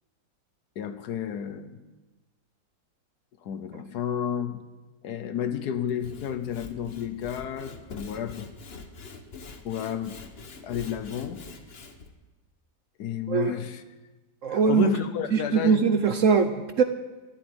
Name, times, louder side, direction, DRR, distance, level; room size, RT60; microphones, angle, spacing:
voice 1, 0.8-1.8 3.4-4.6 5.0-8.5 9.6-10.2 10.6-11.4 13.0-13.8 14.5-15.9, left 8 dB, 70° left, 10 dB, 1.3 m, -31 dB
Sawing / Wood, 5.9-12.1, left 4 dB, 40° left, 1.2 m, -44 dB
voice 2, 14.4-14.9 15.3-16.8, right 6 dB, 60° right, 8 dB, 0.9 m, -22 dB
13.5 x 8.0 x 9.2 m, 1.2 s
omnidirectional pair, 1.9 m